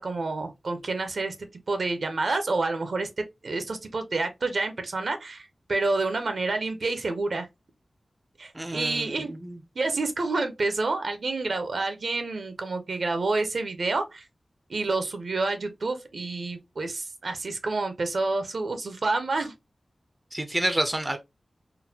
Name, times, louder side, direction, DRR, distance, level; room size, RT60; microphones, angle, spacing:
voice 1, 0.0-1.3 1.7-7.5 8.4-9.3 9.8-14.2 14.7-19.5, right 3 dB, 70° right, 0.7 m, -28 dB
voice 2, 8.5-9.6 20.3-21.2, right 1 dB, 15° right, 0.4 m, -29 dB
3.8 x 2.2 x 2.7 m
wide cardioid pair, 95°, 0 cm